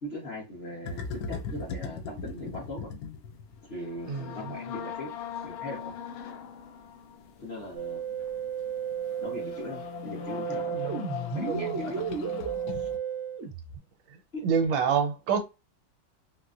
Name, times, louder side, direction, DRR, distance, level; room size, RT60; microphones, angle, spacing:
voice 1, 0.0-2.9 3.6-5.1 5.4-5.9 7.4-8.0 9.2-10.8 11.3-12.0 12.7-12.9 14.3-14.4, left 1 dB, 40° left, 1.0 m, -39 dB
sound 1, 0.8-13.0, left 6 dB, 75° left, 0.8 m, -40 dB
voice 2, 4.1-4.5 10.7-11.1 11.4-11.8 14.1-15.4, right 6 dB, 85° right, 1.4 m, -28 dB
Musical instrument, 7.8-13.8, right 7 dB, 65° right, 0.7 m, -34 dB
4.1 x 2.1 x 2.4 m
omnidirectional pair, 2.1 m